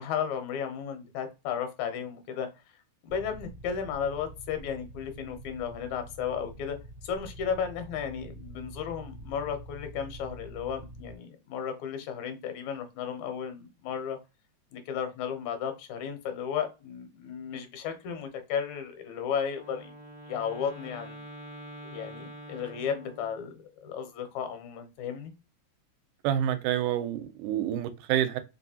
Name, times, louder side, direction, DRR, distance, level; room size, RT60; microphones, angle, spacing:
voice 1, 0.0-2.5 3.0-14.2 14.7-19.9 20.3-21.2 21.8-25.3, left 7 dB, 70° left, 2.0 m, -34 dB
sound 1, 3.1-11.1, right 1 dB, 60° right, 1.1 m, -46 dB
Wind instrument woodwind instrument, 19.5-23.6, equal, 40° right, 0.4 m, -46 dB
voice 2, 26.2-28.4, right 11 dB, 85° right, 2.1 m, -28 dB
4.8 x 2.7 x 2.7 m
omnidirectional pair, 3.6 m